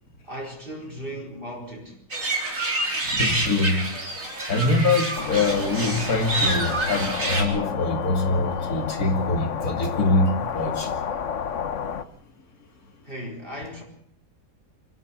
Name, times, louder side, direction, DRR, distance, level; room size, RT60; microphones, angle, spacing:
voice 1, 0.2-2.0 13.0-13.8, equal, 35° right, 4.7 m, -36 dB
sound 1, 2.1-7.4, right 2 dB, 65° right, 4.4 m, -27 dB
voice 2, 3.0-3.9 4.5-10.9, left 2 dB, 85° left, 2.9 m, -24 dB
sound 2, 5.1-12.0, left 7 dB, 60° left, 1.3 m, -31 dB
26.0 x 13.5 x 8.7 m
omnidirectional pair, 1.5 m